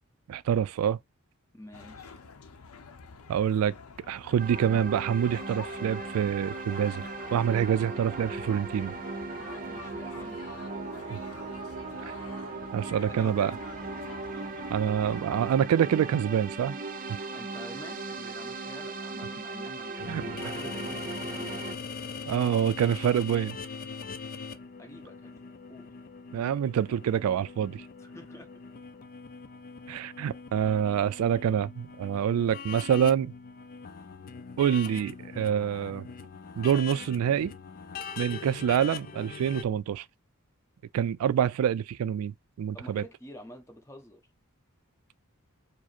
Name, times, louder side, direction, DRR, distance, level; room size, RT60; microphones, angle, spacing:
voice 1, 0.3-1.0 3.3-3.7 4.1-7.0 7.3-8.9 11.1-11.2 12.7-13.5 14.7-16.8 20.1-20.2 22.3-23.6 26.3-27.8 29.9-33.3 34.6-36.1 36.6-37.5 38.2-40.0 40.9-43.0, right 9 dB, 80° right, 0.3 m, -26 dB
voice 2, 1.5-2.2 9.4-10.5 12.8-13.6 17.3-21.6 24.8-25.9 28.0-28.5 42.7-44.2, equal, 15° left, 0.9 m, -48 dB
sound 1, 1.7-15.6, left 5 dB, 90° left, 0.6 m, -47 dB
sound 2, 4.4-21.8, right 3 dB, 40° right, 0.6 m, -38 dB
sound 3, 20.0-39.6, left 5 dB, 40° left, 0.4 m, -42 dB
4.8 x 2.0 x 4.3 m
head